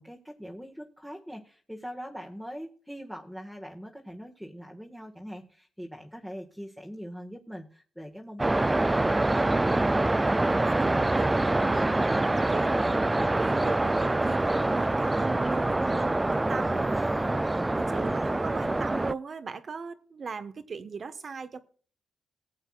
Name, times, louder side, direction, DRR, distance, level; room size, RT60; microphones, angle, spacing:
voice 1, 0.0-10.0, equal, ahead, 1.7 m, -42 dB
sound 1, 8.4-19.1, right 2 dB, 15° right, 0.4 m, -25 dB
voice 2, 10.5-16.9 17.8-21.6, right 5 dB, 50° right, 1.3 m, -39 dB
19.5 x 8.0 x 2.4 m
cardioid pair, 75°, 0 cm